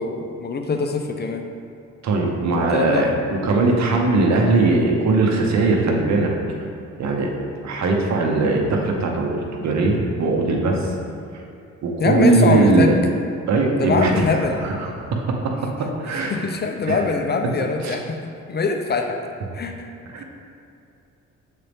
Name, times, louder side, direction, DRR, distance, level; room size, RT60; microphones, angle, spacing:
voice 1, 0.0-1.5 2.5-3.2 12.0-13.0 13.7-14.7 16.3-18.2 18.5-19.2 19.5-19.9 20.2-20.3, left 4 dB, 35° left, 4 dB, 0.5 m, -23 dB
voice 2, 2.0-6.3 7.0-7.3 7.6-10.9 11.8-13.0 13.5-16.4 16.8-17.0 17.4-17.5 17.8-18.0 20.1-20.2, right 3 dB, 65° right, 1 dB, 0.9 m, -20 dB
6.5 x 4.1 x 3.4 m, 2.6 s
cardioid pair, 90°, 30 cm